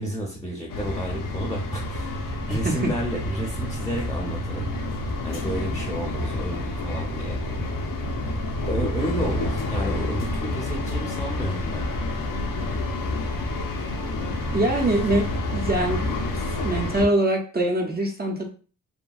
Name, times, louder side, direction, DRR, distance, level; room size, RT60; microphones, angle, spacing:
voice 1, 0.0-4.7 5.2-7.4 8.7-11.9, right 1 dB, 10° left, 0 dB, 0.6 m, -31 dB
sound 1, 0.7-17.1, left 2 dB, 80° left, 0.6 m, -28 dB
voice 2, 2.5-2.9 14.5-16.1 16.6-18.5, right 1 dB, 30° right, 0 dB, 0.6 m, -23 dB
2.8 x 2.6 x 2.3 m, 0.39 s
wide cardioid pair, 90°, 32 cm